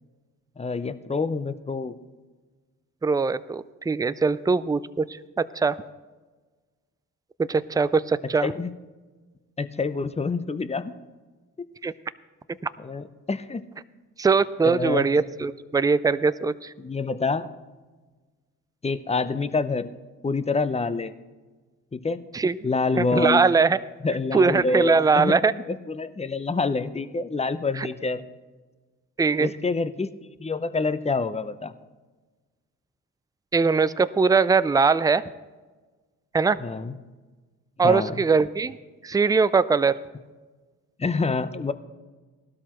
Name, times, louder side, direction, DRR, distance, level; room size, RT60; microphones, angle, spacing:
voice 1, 0.6-1.9 8.4-8.7 9.6-10.9 12.8-13.6 14.6-15.3 16.8-17.5 18.8-19.9 20.2-21.1 21.9-22.2 22.6-23.4 24.0-28.2 29.4-30.1 30.4-31.7 36.6-36.9 37.8-38.1 41.0-41.7, left 3 dB, 15° left, 13 dB, 0.7 m, -27 dB
voice 2, 3.0-5.8 7.4-8.5 11.8-11.9 14.2-16.7 22.3-22.6 23.0-23.8 24.3-25.5 27.8-27.9 29.2-29.5 33.5-35.3 36.3-36.6 37.8-38.8 39.0-40.0, right 4 dB, 10° right, 15 dB, 0.4 m, -21 dB
17.0 x 12.5 x 3.1 m, 1.3 s
hypercardioid pair, 50°, 41 cm